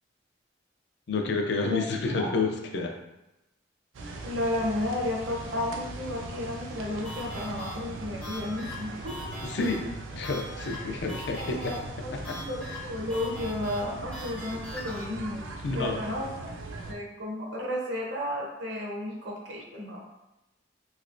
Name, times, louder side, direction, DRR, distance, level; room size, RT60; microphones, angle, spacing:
voice 1, 1.1-2.9 9.4-9.9 10.1-11.7 12.3-12.4 15.6-16.0, left 3 dB, 60° left, 2 dB, 0.4 m, -29 dB
sound 1, 3.9-16.9, right 2 dB, 85° right, 0.4 m, -40 dB
voice 2, 4.2-9.1 11.4-15.5 15.7-16.3 16.9-20.0, left 1 dB, 70° right, -2 dB, 0.8 m, -33 dB
sound 2, 7.0-15.1, left 2 dB, 5° left, 0.5 m, -42 dB
3.1 x 2.9 x 2.5 m, 0.93 s
head